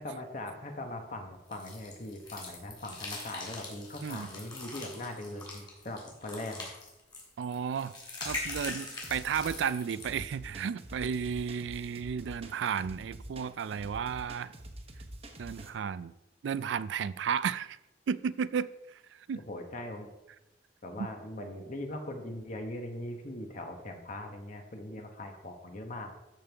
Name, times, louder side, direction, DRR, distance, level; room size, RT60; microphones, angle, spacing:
voice 1, 0.0-6.7 19.5-20.1 20.8-26.1, left 1 dB, 45° left, 1.2 m, -40 dB
sound 1, 1.5-10.2, left 2 dB, 25° left, 3.0 m, -42 dB
voice 2, 7.4-8.0 8.2-14.5 15.4-16.1 16.4-17.8 18.1-19.0 19.3-19.4 21.0-21.1, right 7 dB, 85° right, 0.3 m, -33 dB
sound 2, 8.2-15.7, right 1 dB, 35° right, 1.0 m, -47 dB
13.0 x 5.3 x 3.5 m
head